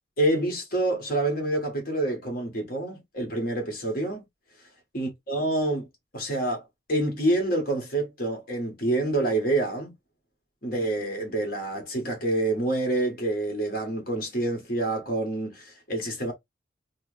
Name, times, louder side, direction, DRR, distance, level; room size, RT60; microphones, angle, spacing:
voice 1, 0.2-4.2 4.9-5.9 6.1-9.9 10.6-16.3, right 1 dB, 50° left, 1.7 m, -27 dB
3.4 x 2.4 x 3.3 m
head